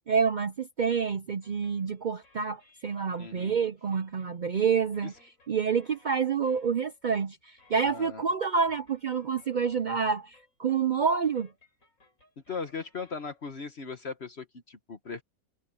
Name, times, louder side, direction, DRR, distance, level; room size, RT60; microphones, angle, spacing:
voice 1, 0.1-5.1 5.5-11.5, right 6 dB, 70° right, 0.4 m, -28 dB
sound 1, 1.4-7.1 7.4-13.6, left 2 dB, 65° left, 8.6 m, -63 dB
voice 2, 3.2-3.5 5.0-5.1 7.8-8.2 12.5-15.2, left 5 dB, 50° left, 1.4 m, -38 dB
omnidirectional pair, 1.5 m